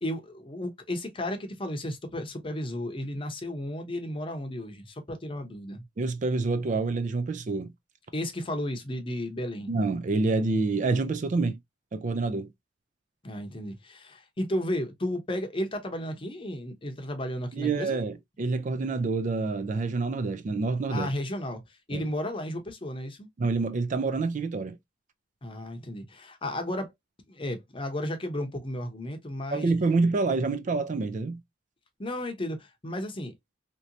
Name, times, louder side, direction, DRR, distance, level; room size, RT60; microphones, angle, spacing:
voice 1, 0.0-5.8 8.1-9.7 13.2-18.0 20.9-23.3 25.4-26.9 27.3-29.7 32.0-33.3, left 1 dB, 25° left, 0.7 m, -33 dB
voice 2, 6.0-7.7 9.7-11.6 11.9-12.5 17.5-21.1 21.9-22.1 23.4-24.8 29.5-31.4, right 3 dB, 40° right, 0.3 m, -27 dB
3.1 x 2.9 x 2.5 m
head